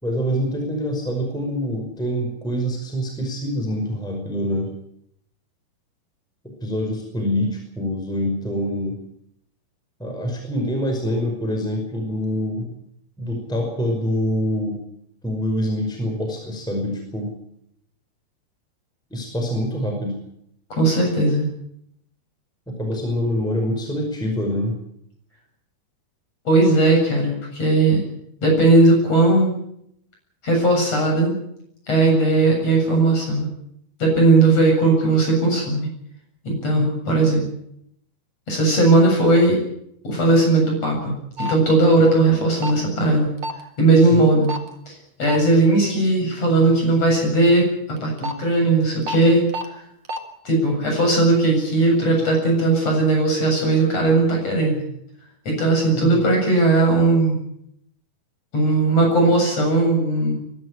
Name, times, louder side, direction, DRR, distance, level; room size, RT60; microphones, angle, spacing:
voice 1, 0.0-4.7 6.6-9.0 10.0-12.7 13.2-14.8 15.2-17.3 19.1-20.2 22.7-24.8 36.8-37.2 44.0-44.2 55.9-56.2, equal, ahead, 2 dB, 5.0 m, -25 dB
voice 2, 20.8-21.5 26.4-28.0 28.4-29.5 30.4-31.3 31.9-33.5 34.0-35.9 36.4-37.4 38.5-39.6 40.0-43.3 43.8-44.5 44.9-45.0 45.2-49.5 49.7-49.8 50.4-54.8 55.4-57.4 58.5-60.3, right 2 dB, 40° left, 1 dB, 8.6 m, -18 dB
sound 1, 41.4-41.6 42.6-42.8 43.4-43.6 44.5-44.7 45.2-45.4 48.0-48.3 49.1-49.2 49.5-49.7 50.1-50.2, equal, 45° right, 2.5 m, -27 dB
23.0 x 13.5 x 10.0 m, 0.74 s
omnidirectional pair, 4.7 m